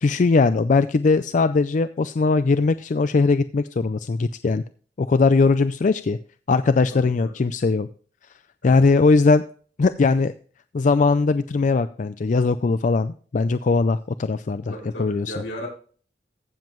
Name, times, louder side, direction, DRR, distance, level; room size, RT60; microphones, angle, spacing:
voice 1, 0.0-4.6 5.0-6.2 6.5-7.9 8.6-9.4 9.8-10.3 10.7-14.7 15.0-15.3, left 4 dB, 45° left, 12 dB, 0.4 m, -20 dB
voice 2, 6.9-7.3 8.6-8.8 14.7-15.7, equal, 80° left, 0 dB, 5.7 m, -35 dB
15.0 x 7.3 x 3.1 m, 0.42 s
head